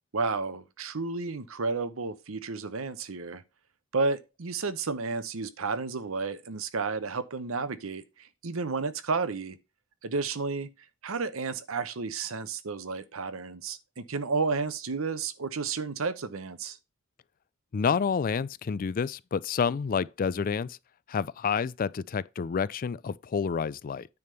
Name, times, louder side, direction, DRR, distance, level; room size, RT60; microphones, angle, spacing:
voice 1, 0.1-3.4 3.9-8.0 8.4-9.6 10.0-10.7 11.0-16.8, right 4 dB, 85° right, 0.9 m, -32 dB
voice 2, 17.7-20.8 21.1-24.1, left 6 dB, 45° left, 0.4 m, -29 dB
9.5 x 3.6 x 6.7 m
head